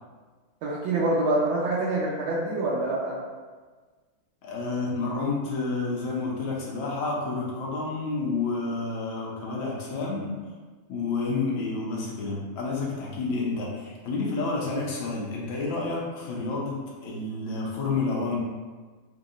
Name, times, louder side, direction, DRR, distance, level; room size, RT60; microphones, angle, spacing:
voice 1, 0.6-3.2, right 2 dB, 80° right, -5 dB, 1.4 m, -26 dB
voice 2, 4.4-10.4 10.9-18.4, left 3 dB, 75° left, -4 dB, 1.6 m, -30 dB
4.9 x 2.7 x 2.5 m, 1.4 s
omnidirectional pair, 2.2 m